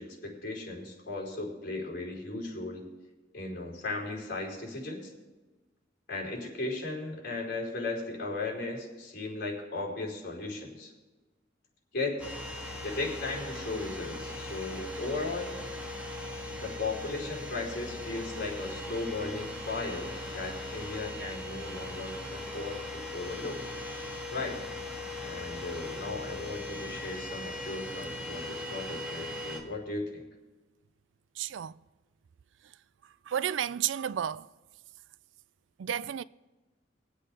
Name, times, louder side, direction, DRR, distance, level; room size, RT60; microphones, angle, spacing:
voice 1, 0.0-2.8 3.3-5.1 6.1-10.9 11.9-12.2 12.8-15.6 16.6-23.7 24.3-24.6 25.2-30.2, left 3 dB, 55° left, 4.8 m, -36 dB
sound 1, 12.2-29.6, left 2 dB, 10° right, 2.2 m, -39 dB
voice 2, 31.4-31.8 33.3-34.5 35.8-36.2, right 9 dB, 85° right, 0.4 m, -32 dB
23.0 x 8.1 x 3.8 m
head